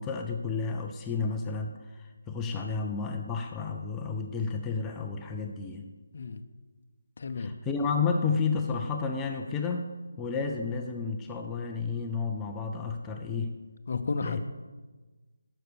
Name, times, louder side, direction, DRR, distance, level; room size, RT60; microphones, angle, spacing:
voice 1, 0.0-5.9 7.4-9.9 10.2-13.5 14.2-14.4, left 5 dB, 10° left, 3 dB, 0.4 m, -31 dB
voice 2, 7.2-7.5 13.9-14.4, left 4 dB, 45° left, 7 dB, 0.7 m, -32 dB
9.2 x 6.5 x 6.9 m, 1.3 s
figure-of-eight pair, 175°, 0 cm